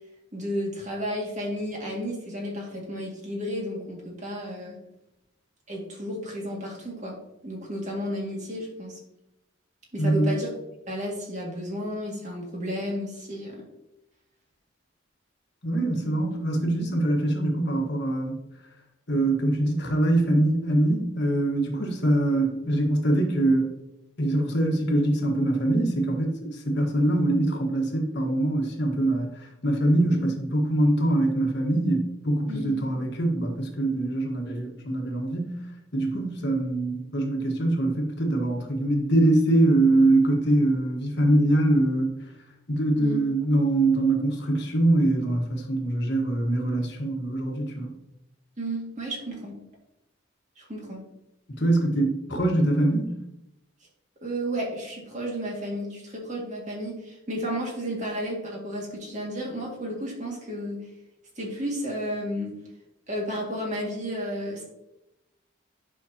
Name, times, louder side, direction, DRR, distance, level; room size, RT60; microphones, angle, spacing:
voice 1, 0.3-4.8 5.7-7.2 7.4-9.0 9.9-10.5 10.9-13.6 16.0-16.2 32.5-32.9 43.0-43.2 48.6-49.5 50.6-51.0 54.2-60.8 61.4-62.5 63.1-64.6, equal, 35° right, -2 dB, 2.0 m, -32 dB
voice 2, 10.0-10.3 15.6-18.4 19.1-23.7 24.2-35.6 35.9-42.2 42.7-47.9 51.6-53.1, right 1 dB, 55° left, 2 dB, 1.4 m, -23 dB
9.7 x 5.7 x 2.8 m, 0.87 s
head